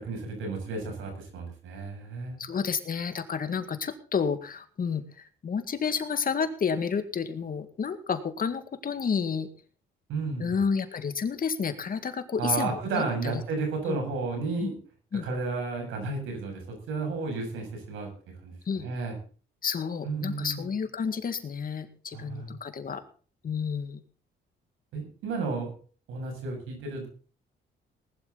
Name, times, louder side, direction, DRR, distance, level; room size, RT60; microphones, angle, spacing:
voice 1, 0.0-2.4 10.1-10.6 12.4-14.8 15.2-16.6 16.9-18.1 18.4-19.1 20.0-20.7 22.1-22.5 24.9-25.7 26.1-27.1, right 4 dB, 90° right, 3 dB, 7.2 m, -32 dB
voice 2, 2.4-9.5 10.4-13.3 13.9-14.0 14.6-14.7 15.1-15.3 18.7-18.8 19.6-23.0 23.4-24.0, left 6 dB, 45° left, 9 dB, 2.1 m, -30 dB
19.0 x 12.0 x 4.1 m, 0.39 s
cardioid pair, 90°, 20 cm